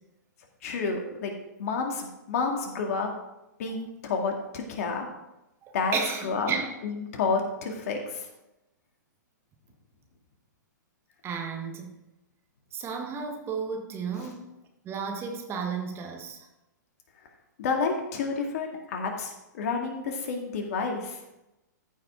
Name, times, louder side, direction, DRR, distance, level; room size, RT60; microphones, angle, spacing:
voice 1, 0.6-1.3 1.6-3.1 3.6-5.1 5.7-6.0 6.2-6.5 6.8-8.3 14.2-14.3 17.6-21.2, left 4 dB, 55° left, 2 dB, 2.1 m, -30 dB
voice 2, 5.6-6.7 11.2-12.0 12.7-14.5 14.8-16.4, right 6 dB, 25° right, 4 dB, 1.3 m, -33 dB
14.5 x 5.6 x 3.8 m, 0.93 s
hypercardioid pair, 120°, 10 cm